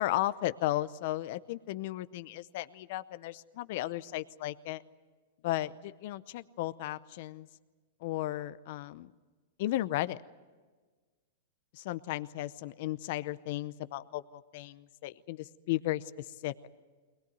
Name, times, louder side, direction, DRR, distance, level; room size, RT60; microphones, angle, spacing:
voice 1, 0.0-4.8 5.4-7.5 8.0-9.1 9.6-10.2 11.9-16.7, left 15 dB, 55° left, 14 dB, 0.7 m, -35 dB
22.5 x 19.5 x 9.4 m, 1.4 s
hypercardioid pair, 135°, 0 cm